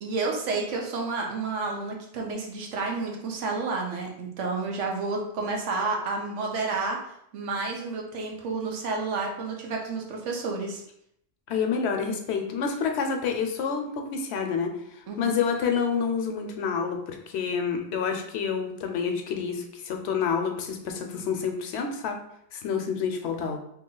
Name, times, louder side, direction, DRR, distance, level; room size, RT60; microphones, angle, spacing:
voice 1, 0.0-7.0 7.3-10.8 15.1-15.3, right 3 dB, 90° right, 0 dB, 1.1 m, -30 dB
voice 2, 11.5-22.2 22.5-23.6, left 6 dB, 70° left, 3 dB, 0.8 m, -28 dB
sound 1, 15.7-16.9, right 7 dB, 40° right, 0.7 m, -38 dB
2.9 x 2.8 x 3.7 m, 0.73 s
omnidirectional pair, 1.2 m